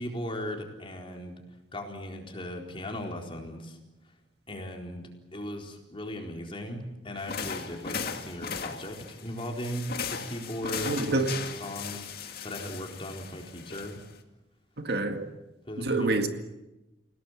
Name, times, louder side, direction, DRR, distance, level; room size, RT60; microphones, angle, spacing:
voice 1, 0.0-1.4 1.7-3.8 4.5-5.0 5.3-11.2 11.6-14.0 15.7-16.3, equal, 30° left, 4.2 m, -38 dB
sound 1, 7.2-14.2, left 6 dB, 60° left, 2.2 m, -37 dB
voice 2, 10.8-11.4 14.8-15.3 15.8-16.3, right 2 dB, 60° right, 2.0 m, -27 dB
29.0 x 18.0 x 8.9 m
head